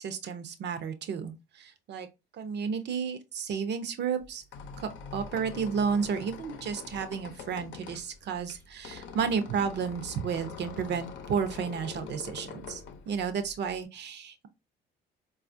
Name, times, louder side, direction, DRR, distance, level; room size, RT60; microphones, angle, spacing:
voice 1, 0.0-2.1 2.4-4.4 4.8-12.8 13.1-14.5, right 6 dB, 55° right, 0.7 m, -32 dB
Squeak, 4.2-13.8, left 6 dB, 65° left, 0.7 m, -44 dB
4.0 x 2.4 x 2.6 m
supercardioid pair, 80°, 21 cm